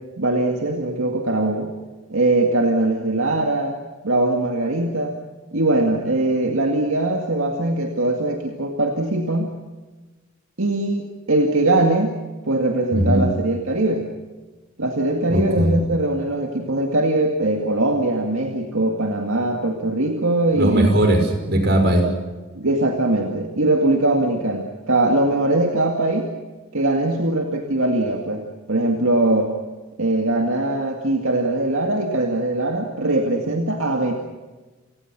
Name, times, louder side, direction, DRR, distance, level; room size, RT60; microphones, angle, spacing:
voice 1, 0.0-1.7 2.1-3.8 4.0-5.2 5.5-9.5 10.6-12.2 12.4-14.1 14.8-21.0 22.6-26.3 26.7-29.5 30.0-34.1, right 2 dB, 70° right, 2 dB, 2.2 m, -21 dB
voice 2, 12.9-13.3 15.3-15.8 20.5-22.1, right 1 dB, 50° right, 4 dB, 5.9 m, -18 dB
29.5 x 19.0 x 6.2 m, 1.3 s
head